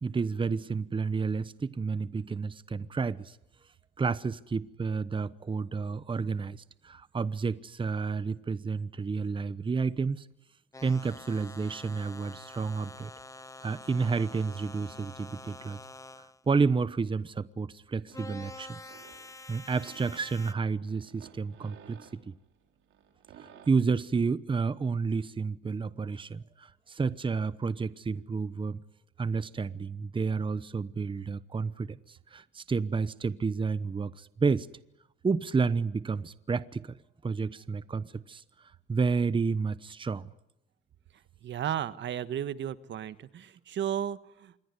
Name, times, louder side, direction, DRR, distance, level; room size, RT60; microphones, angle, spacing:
voice 1, 0.0-3.4 4.0-10.3 10.8-13.1 13.4-15.8 16.5-18.9 19.5-22.3 23.7-28.8 29.2-34.7 35.2-36.9 37.2-38.4 38.9-40.3, right 4 dB, 25° right, 1.0 m, -30 dB
sound 1, 10.7-16.4 18.1-20.5, left 2 dB, 15° left, 1.4 m, -47 dB
sound 2, 17.8-23.7, right 8 dB, 85° right, 4.4 m, -56 dB
voice 2, 41.4-44.5, right 10 dB, 65° right, 1.5 m, -34 dB
27.0 x 22.5 x 9.8 m
cardioid pair, 90°, 20 cm